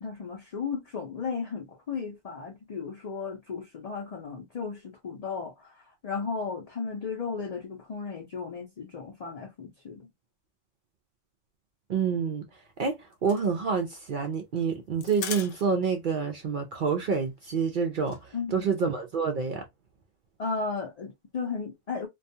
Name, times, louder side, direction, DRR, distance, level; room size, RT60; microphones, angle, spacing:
voice 1, 0.0-10.1 18.3-18.7 20.4-22.1, left 5 dB, 50° left, 0.4 m, -35 dB
voice 2, 11.9-12.4 12.8-18.2 18.5-19.6, right 5 dB, 70° right, 0.4 m, -28 dB
sound 1, 12.7-16.0 16.3-16.4 16.6-16.8 17.1-18.2, left 6 dB, 70° left, 0.9 m, -41 dB
2.3 x 2.3 x 2.6 m
omnidirectional pair, 1.4 m